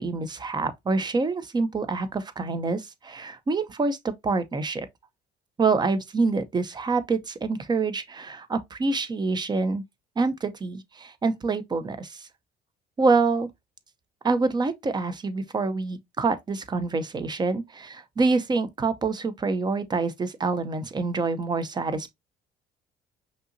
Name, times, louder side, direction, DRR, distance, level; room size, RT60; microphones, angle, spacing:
voice 1, 0.0-4.9 5.6-9.8 10.2-12.3 13.0-13.5 14.2-22.1, right 4 dB, 25° right, 0.7 m, -26 dB
5.4 x 2.8 x 2.6 m
cardioid pair, 110°, 17 cm